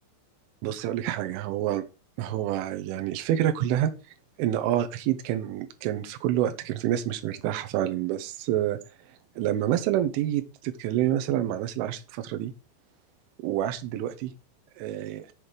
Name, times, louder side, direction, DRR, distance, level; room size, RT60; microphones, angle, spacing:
voice 1, 0.6-1.8 2.2-3.9 4.4-8.8 9.4-12.5 13.4-14.3 14.8-15.2, right 12 dB, 80° right, 8 dB, 3.3 m, -27 dB
7.5 x 6.3 x 5.1 m, 0.30 s
omnidirectional pair, 5.8 m